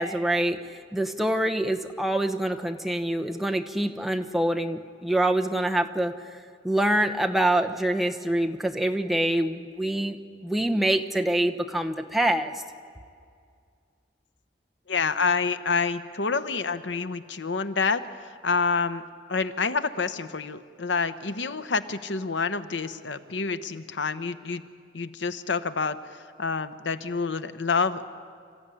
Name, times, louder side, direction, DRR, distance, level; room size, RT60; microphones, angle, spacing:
voice 1, 0.0-6.1 6.6-10.2 10.4-12.5, right 1 dB, ahead, 3 dB, 0.9 m, -25 dB
voice 2, 14.9-19.0 19.3-24.6 24.9-28.0, left 4 dB, 85° left, 11 dB, 0.9 m, -28 dB
26.5 x 14.5 x 9.9 m, 2.2 s
head